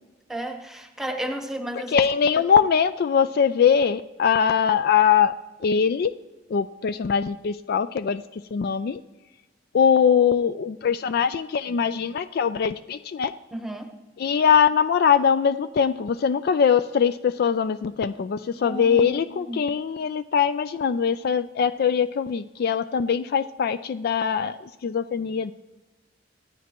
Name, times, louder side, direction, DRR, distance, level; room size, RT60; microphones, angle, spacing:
voice 1, 0.3-1.9 13.5-14.0 18.5-19.7, right 1 dB, ahead, 4 dB, 1.1 m, -33 dB
voice 2, 1.9-5.3 5.6-6.1 6.5-9.0 9.7-13.3 14.2-25.5, left 7 dB, 55° left, 13 dB, 0.3 m, -22 dB
25.0 x 9.2 x 3.0 m, 1.1 s
head